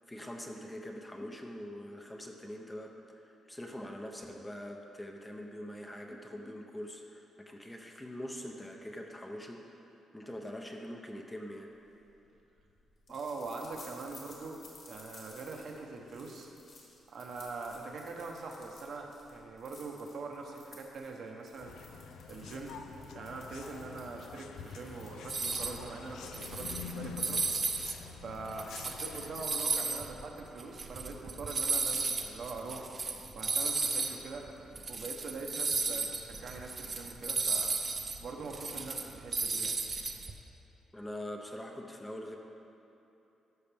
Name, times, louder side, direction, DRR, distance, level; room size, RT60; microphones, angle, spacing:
voice 1, 0.1-9.8 10.1-11.7 40.9-42.4, left 1 dB, 10° left, 2 dB, 0.6 m, -43 dB
sound 1, 11.9-29.3, left 3 dB, 50° left, 2.0 m, -57 dB
voice 2, 13.1-16.5 17.1-21.7 22.3-22.8 23.1-27.4 28.1-32.9 33.3-34.5 34.9-37.7 38.2-39.8, right 3 dB, 55° right, 1 dB, 1.0 m, -43 dB
sound 2, 21.6-29.4, left 6 dB, 90° left, 0.4 m, -46 dB
sound 3, 25.3-25.8 26.2-27.9 28.4-34.1 34.5-34.6 34.8-40.3, right 4 dB, 30° right, 0.6 m, -34 dB
13.5 x 5.6 x 3.5 m, 2.9 s
cardioid pair, 140°, 0 cm